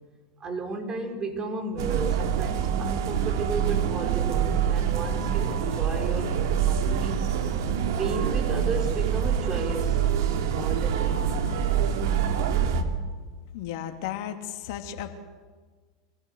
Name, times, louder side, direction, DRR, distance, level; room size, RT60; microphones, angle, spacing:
voice 1, 0.4-7.3 7.9-10.0 10.3-11.2, right 3 dB, 30° right, 4 dB, 4.8 m, -34 dB
sound 1, 1.8-12.8, right 8 dB, 70° right, 2.4 m, -25 dB
voice 2, 13.5-15.2, left 9 dB, 60° left, 6 dB, 2.7 m, -34 dB
26.5 x 17.0 x 8.1 m, 1.4 s
hypercardioid pair, 90°, 2 cm